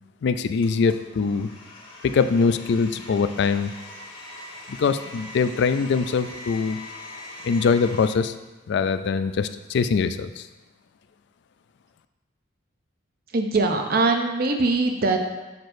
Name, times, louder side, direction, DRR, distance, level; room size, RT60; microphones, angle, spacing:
voice 1, 0.2-1.5 2.0-3.7 4.7-6.8 7.4-8.3 8.7-10.5, left 5 dB, 60° left, 11 dB, 0.3 m, -23 dB
Domestic sounds home sounds, 0.6-8.1, left 2 dB, 25° left, 1.2 m, -42 dB
voice 2, 13.3-15.2, right 3 dB, 50° right, 4 dB, 0.6 m, -22 dB
6.7 x 6.0 x 2.6 m, 1.1 s
head